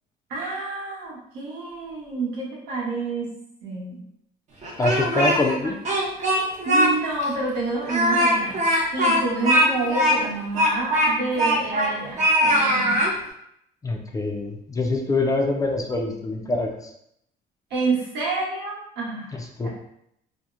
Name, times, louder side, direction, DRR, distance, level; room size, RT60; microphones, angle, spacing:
voice 1, 0.3-3.3 3.6-4.0 5.1-5.3 5.6-5.7 6.6-8.6 8.9-13.0 17.7-19.7, right 3 dB, 80° right, -5 dB, 1.0 m, -28 dB
Speech, 4.6-5.5 5.8-6.9 7.2-7.3 7.8-11.9 12.2-13.1, equal, 45° right, 0.6 m, -21 dB
voice 2, 4.8-5.8 13.8-16.7 19.3-19.7, left 2 dB, 20° left, 2 dB, 0.3 m, -24 dB
2.7 x 2.0 x 2.4 m, 0.74 s
cardioid pair, 110°, 17 cm